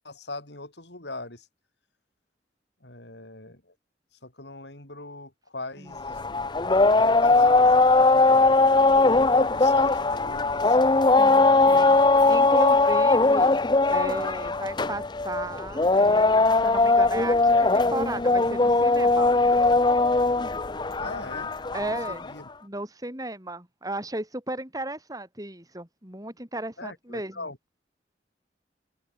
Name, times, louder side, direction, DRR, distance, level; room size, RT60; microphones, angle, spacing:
voice 1, 0.0-1.5 2.8-3.7 4.2-6.3 6.8-8.6 9.0-10.8 11.5-11.9 21.0-21.5 21.8-22.5 26.8-27.6, left 2 dB, 70° left, 6.5 m, -40 dB
sound 1, 6.0-22.3, left 3 dB, 25° left, 0.7 m, -20 dB
voice 2, 11.2-11.9 12.3-13.6 13.9-19.3 21.7-22.2 22.6-27.3, right 1 dB, 20° right, 4.5 m, -35 dB
open air
head